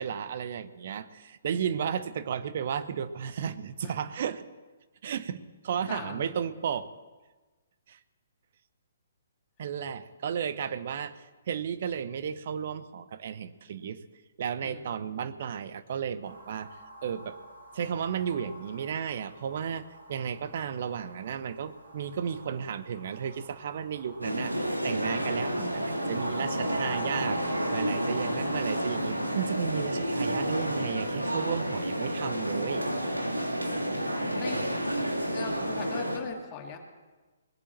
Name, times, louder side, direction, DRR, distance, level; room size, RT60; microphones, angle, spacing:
voice 1, 0.0-4.4 5.0-5.4 5.6-6.9 7.9-8.0 9.6-14.0 14.4-17.4 17.7-32.8, right 8 dB, 50° right, 13 dB, 0.9 m, -33 dB
voice 2, 5.7-6.3 14.6-14.9 26.8-27.5 34.4-34.7 35.3-36.8, left 5 dB, 25° left, 2 dB, 2.3 m, -40 dB
sound 1, 16.2-29.4, right 2 dB, 70° right, 6.4 m, -44 dB
sound 2, 24.2-36.2, equal, 90° right, 2.1 m, -30 dB
20.0 x 8.5 x 7.4 m, 1.2 s
figure-of-eight pair, 125°, 0 cm